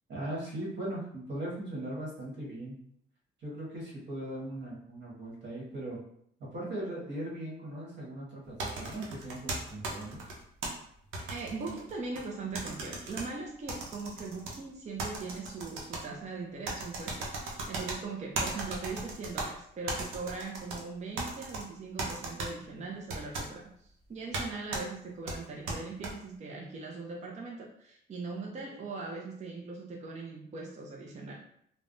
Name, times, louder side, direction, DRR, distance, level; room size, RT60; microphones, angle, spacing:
voice 1, 0.1-2.8 3.4-6.0 6.4-10.2, right 1 dB, 60° right, -4 dB, 1.4 m, -39 dB
sound 1, 8.6-10.7 11.1-12.3 12.6-13.3 13.7-14.6 15.0-16.0 16.7-18.0 18.4-19.5 19.9-20.8 21.2-21.6 22.0-22.5 23.1-23.5 24.3-24.4 24.7-24.8 25.3-26.1, right 2 dB, 80° right, 0.7 m, -36 dB
voice 2, 11.3-23.7 24.1-31.4, right 3 dB, 35° right, -1 dB, 0.5 m, -40 dB
3.2 x 2.1 x 2.5 m, 0.68 s
cardioid pair, 90°, 20 cm